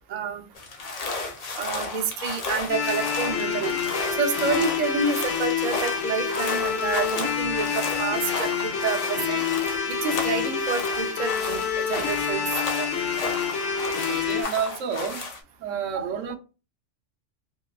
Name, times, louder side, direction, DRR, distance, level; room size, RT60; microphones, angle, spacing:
voice 1, 0.1-0.4 1.6-3.8 4.2-9.4 9.9-12.5 12.7-12.9 15.9-16.1, right 5 dB, 60° right, 0.4 m, -29 dB
sound 1, 0.5-15.4, left 3 dB, 50° left, 0.4 m, -34 dB
sound 2, 2.7-14.4, left 6 dB, 80° left, 1.0 m, -27 dB
voice 2, 14.0-15.3 15.6-16.4, right 7 dB, 85° right, 1.0 m, -30 dB
2.8 x 2.2 x 2.2 m
omnidirectional pair, 1.3 m